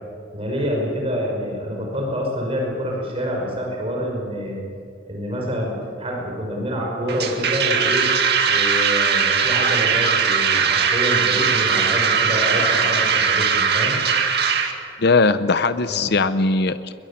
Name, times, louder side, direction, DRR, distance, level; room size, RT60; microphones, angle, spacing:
voice 1, 0.3-4.6 5.1-8.1 8.5-14.0 15.9-16.1, equal, 30° right, -1 dB, 5.6 m, -27 dB
sound 1, 7.1-14.7, right 6 dB, 60° right, 2.1 m, -19 dB
voice 2, 15.0-16.9, left 3 dB, 60° left, 12 dB, 0.8 m, -19 dB
22.5 x 22.0 x 8.8 m, 2.3 s
head